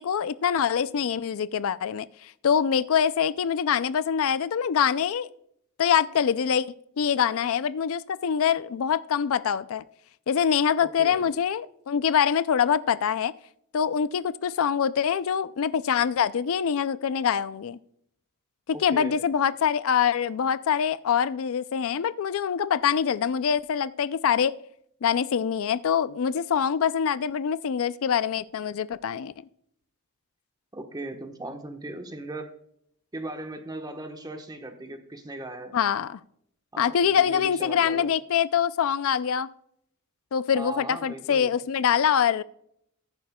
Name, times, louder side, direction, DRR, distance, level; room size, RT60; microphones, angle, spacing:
voice 1, 0.0-5.3 5.8-6.7 7.0-9.8 10.3-13.3 13.7-17.8 18.8-24.5 25.0-29.3 35.7-36.2 36.8-39.5 40.3-42.4, left 8 dB, 65° left, 0.4 m, -24 dB
voice 2, 10.8-11.3 18.7-19.2 30.7-32.5 33.1-35.7 36.7-38.1 40.5-41.5, right 2 dB, 20° right, 1.1 m, -38 dB
14.5 x 10.5 x 2.3 m
head